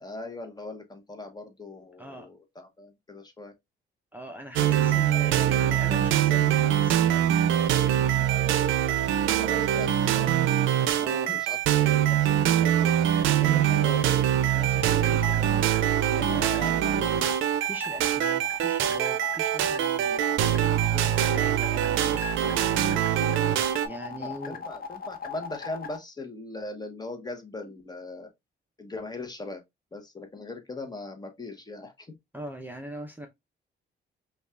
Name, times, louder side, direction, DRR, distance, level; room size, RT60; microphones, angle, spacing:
voice 1, 0.0-3.5 5.1-5.5 8.2-11.6 11.8-12.9 16.3-17.0 24.1-28.3 28.8-29.6 29.9-32.2, left 2 dB, 20° left, 0.9 m, -40 dB
voice 2, 2.0-2.3 4.1-7.6 7.9-8.5 11.0-11.3 13.2-16.5 16.9-23.2 23.8-24.6 32.3-33.3, right 1 dB, 10° right, 0.6 m, -41 dB
sound 1, 4.6-23.9, right 11 dB, 80° right, 0.5 m, -24 dB
sound 2, 14.6-26.0, left 6 dB, 45° left, 0.8 m, -38 dB
5.2 x 2.4 x 2.3 m
cardioid pair, 90°, 20 cm